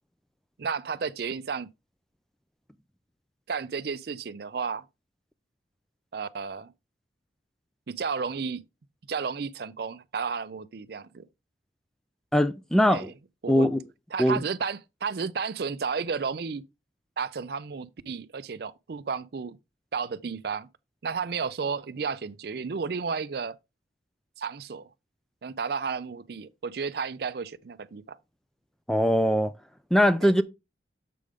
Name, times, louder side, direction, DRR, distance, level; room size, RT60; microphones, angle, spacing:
voice 1, 0.6-1.7 3.5-4.8 6.1-6.7 7.9-8.6 9.1-11.2 12.9-13.1 13.4-13.7 14.1-16.6 17.2-19.6 19.9-20.7 21.0-23.6 24.4-24.9 25.4-28.2 30.2-30.4, right 5 dB, 55° right, 0.4 m, -32 dB
voice 2, 12.3-13.1 13.5-13.8 14.2-14.4 28.9-29.5 29.9-30.4, equal, ahead, 0.4 m, -21 dB
7.6 x 5.0 x 3.5 m
head